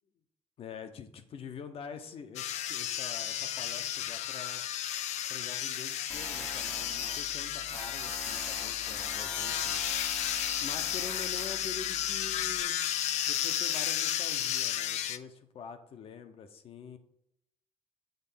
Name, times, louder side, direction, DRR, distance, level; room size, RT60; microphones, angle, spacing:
voice 1, 0.6-4.6 5.3-9.8 10.6-12.7 13.3-17.0, left 6 dB, 55° left, 8 dB, 0.8 m, -45 dB
sound 1, 2.4-15.2, left 11 dB, 85° left, 0.5 m, -33 dB
Tools, 6.1-12.6, equal, 5° left, 0.7 m, -43 dB
8.1 x 3.9 x 5.5 m, 0.76 s
cardioid pair, 145°, 11 cm